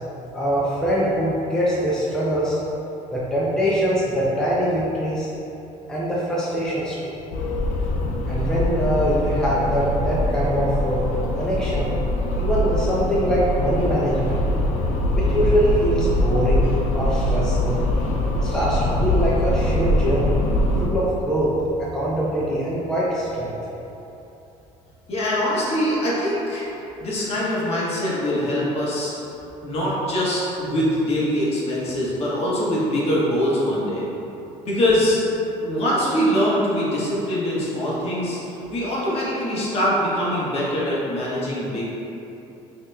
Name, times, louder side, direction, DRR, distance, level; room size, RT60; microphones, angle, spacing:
voice 1, 0.3-2.6 3.1-5.3 5.9-7.2 8.3-11.1 11.4-11.9 12.4-14.4 15.1-16.6 16.9-17.8 18.4-20.4 20.8-21.5 21.8-23.5, equal, 5° left, -8 dB, 0.5 m, -23 dB
sound 1, 7.3-20.9, left 1 dB, 65° left, 0.5 m, -23 dB
voice 2, 25.1-26.6 27.0-29.1 29.6-34.1 34.6-35.2 35.6-38.4 38.7-41.8, equal, 45° left, -7 dB, 1.2 m, -23 dB
5.9 x 2.9 x 2.3 m, 3.0 s
cardioid pair, 125°, 14 cm